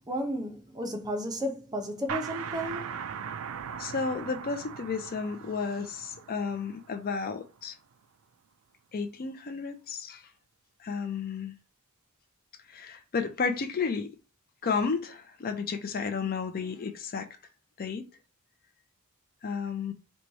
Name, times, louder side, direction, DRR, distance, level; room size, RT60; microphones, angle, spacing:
voice 1, 0.1-2.8, equal, 20° right, 0.6 m, -33 dB
sound 1, 2.1-7.5, right 7 dB, 70° right, 0.3 m, -39 dB
voice 2, 3.8-7.7 8.9-10.2 10.8-11.5 12.7-14.1 14.6-17.3 17.8-18.1 19.4-19.9, left 5 dB, 40° left, 0.4 m, -32 dB
3.0 x 2.2 x 4.0 m
head